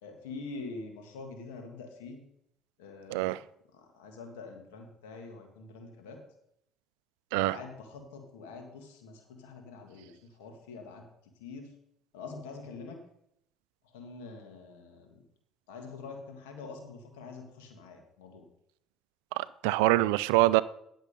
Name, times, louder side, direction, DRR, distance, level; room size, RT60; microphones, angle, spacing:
voice 1, 0.0-2.2 2.8-3.4 3.7-6.2 7.4-11.7 12.1-13.0 13.8-15.2 15.7-18.5, left 4 dB, 90° left, 1.6 m, -45 dB
voice 2, 3.1-3.4 7.3-7.6 19.4-20.6, right 18 dB, 85° right, 0.3 m, -25 dB
10.5 x 6.3 x 5.1 m
supercardioid pair, 70°, 0 cm